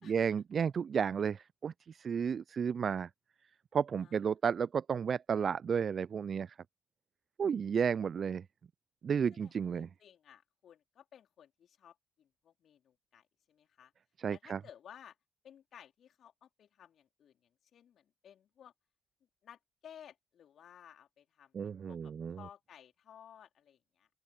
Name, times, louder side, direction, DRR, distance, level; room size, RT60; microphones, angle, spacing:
voice 1, 0.0-3.1 3.7-6.5 7.4-8.4 9.0-9.9 14.2-14.6 21.5-22.4, right 7 dB, 50° right, 0.6 m, -32 dB
voice 2, 9.3-13.9 14.3-15.2 15.4-17.3 17.7-18.7 19.4-24.1, left 9 dB, 60° left, 3.9 m, -57 dB
open air
figure-of-eight pair, 40°, 0 cm